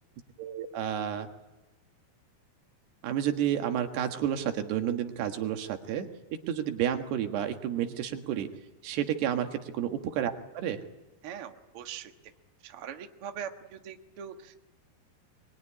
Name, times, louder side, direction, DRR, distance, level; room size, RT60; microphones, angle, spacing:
voice 1, 0.4-1.3 3.0-6.1 6.5-8.5 8.8-10.8, right 10 dB, 85° right, 6 dB, 3.7 m, -30 dB
voice 2, 11.2-12.1 12.6-14.6, right 8 dB, 50° right, 6 dB, 1.7 m, -42 dB
23.0 x 22.5 x 10.0 m, 1.1 s
omnidirectional pair, 4.6 m